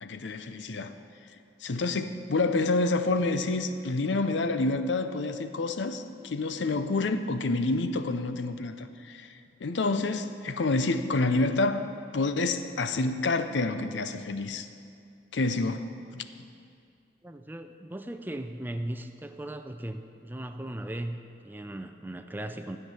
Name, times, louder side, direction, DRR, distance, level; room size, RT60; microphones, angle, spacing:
voice 1, 0.0-1.0 1.6-11.9 12.1-14.7 15.3-15.8 16.1-16.2, left 3 dB, 85° left, 9 dB, 0.6 m, -28 dB
voice 2, 17.2-22.8, right 1 dB, 10° right, 7 dB, 0.5 m, -37 dB
13.0 x 5.9 x 9.1 m, 2.4 s
head